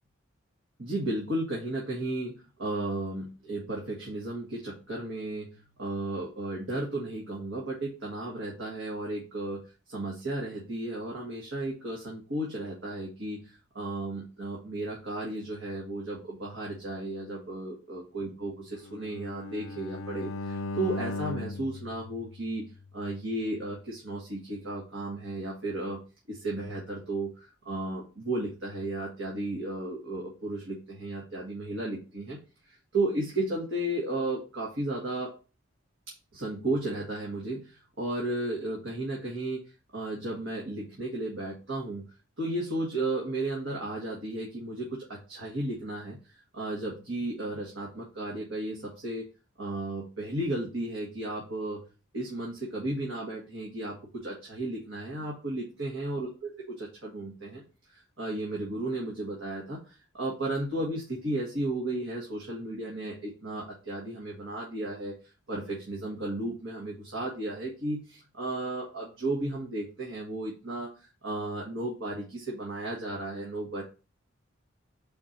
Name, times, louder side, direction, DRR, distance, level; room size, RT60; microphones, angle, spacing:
voice 1, 0.8-9.6 9.9-26.0 26.3-32.4 32.7-35.3 36.3-39.7 39.9-42.0 42.4-46.2 46.5-49.3 49.6-51.8 52.1-57.6 57.9-65.2 65.5-73.8, right 2 dB, 70° right, -3 dB, 1.6 m, -34 dB
Bowed string instrument, 18.8-23.0, left 2 dB, 80° left, 0.4 m, -38 dB
4.4 x 4.3 x 5.3 m, 0.33 s
head